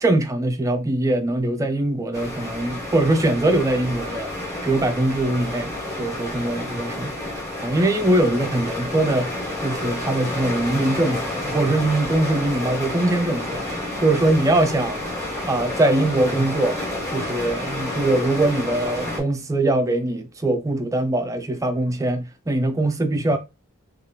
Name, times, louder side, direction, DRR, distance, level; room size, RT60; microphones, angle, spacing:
voice 1, 0.0-4.3 4.6-7.2 7.6-9.3 9.6-15.0 15.5-16.8 17.1-23.4, right 2 dB, 15° right, 0.3 m, -22 dB
sound 1, 2.1-19.2, left 1 dB, 15° left, 1.3 m, -30 dB
3.1 x 2.4 x 2.7 m
head